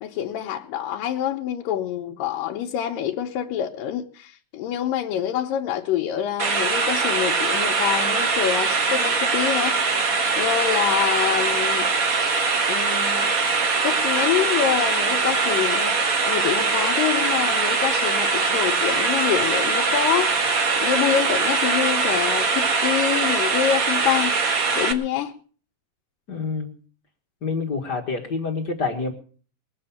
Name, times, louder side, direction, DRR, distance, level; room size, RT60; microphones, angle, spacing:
voice 1, 0.0-11.9 12.7-13.3 13.8-20.3 20.8-24.4 24.8-25.3, left 10 dB, 85° left, 2.6 m, -26 dB
sound 1, 6.4-24.9, right 4 dB, 80° right, 0.7 m, -22 dB
voice 2, 26.3-26.7 27.4-29.1, left 4 dB, 45° left, 1.5 m, -27 dB
21.0 x 7.8 x 7.1 m
omnidirectional pair, 3.8 m